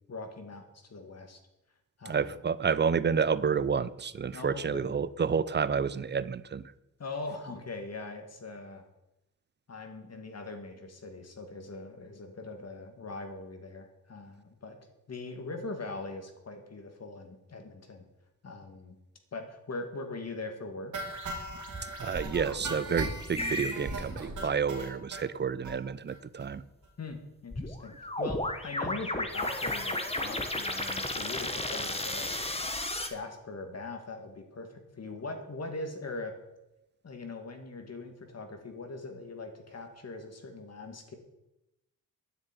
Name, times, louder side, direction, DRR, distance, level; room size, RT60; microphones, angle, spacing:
voice 1, 0.1-1.4 2.0-2.4 4.3-4.9 7.0-8.8 9.7-14.8 15.1-18.0 18.4-19.0 19.3-20.9 27.0-32.4 33.1-36.4 37.0-41.2, left 3 dB, 45° left, 5 dB, 2.1 m, -41 dB
voice 2, 2.1-6.6 22.0-26.6, right 6 dB, 30° right, 17 dB, 0.5 m, -30 dB
sound 1, 20.9-25.2 25.6-25.8 26.1-26.2 26.4-26.5 26.8-26.9, right 2 dB, 55° right, 2.4 m, -38 dB
sound 2, 23.3-23.8 27.5-33.1, left 1 dB, 15° left, 1.3 m, -33 dB
9.9 x 7.3 x 9.1 m, 0.93 s
wide cardioid pair, 105°, 35 cm